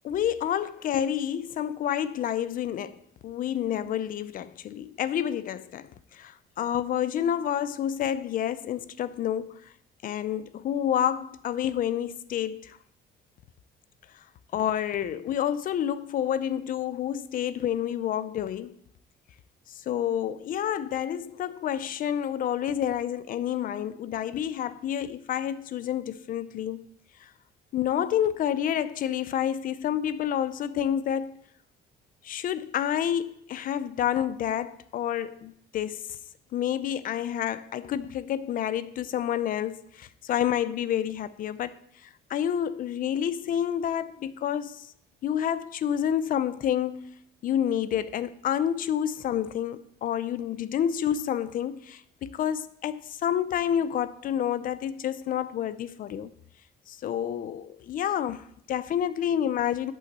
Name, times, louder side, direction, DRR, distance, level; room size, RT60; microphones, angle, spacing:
voice 1, 0.0-9.7 10.0-12.8 14.5-18.8 19.7-26.9 27.2-27.3 27.7-31.4 32.2-36.2 36.5-44.9 45.2-47.1 47.4-56.3 56.9-59.9, left 10 dB, 50° left, 0.5 m, -29 dB
8.5 x 5.6 x 7.4 m
cardioid pair, 150°, 18 cm